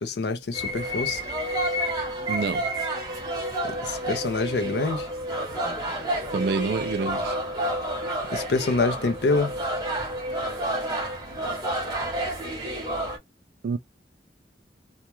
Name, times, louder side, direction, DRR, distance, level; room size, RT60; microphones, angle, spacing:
voice 1, 0.0-1.2 3.6-5.1 8.3-9.5, left 3 dB, 70° left, 0.5 m, -26 dB
sound 1, 0.5-13.2, right 1 dB, 20° right, 0.8 m, -29 dB
voice 2, 2.3-2.7 5.9-6.0 6.3-7.4 13.6-13.8, right 4 dB, 60° right, 0.3 m, -27 dB
2.3 x 2.1 x 2.9 m
head